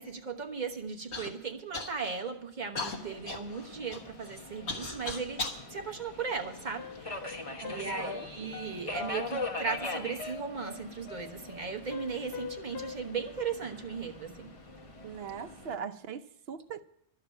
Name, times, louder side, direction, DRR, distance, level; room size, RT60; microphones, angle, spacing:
voice 1, 0.0-14.5, right 5 dB, 45° right, 1.4 m, -37 dB
Human voice / Cough, 1.1-1.3 1.7-2.2 2.8-5.6 6.3-7.2 7.9-8.0 8.7-9.1, left 3 dB, 90° left, 1.8 m, -38 dB
Subway metro underground, 2.9-15.7, left 2 dB, 30° left, 1.1 m, -42 dB
sound 1, 6.8-13.0, left 7 dB, 70° left, 0.9 m, -43 dB
voice 2, 7.6-8.3 15.0-16.8, right 7 dB, 70° right, 0.9 m, -40 dB
12.0 x 7.3 x 9.1 m
omnidirectional pair, 1.1 m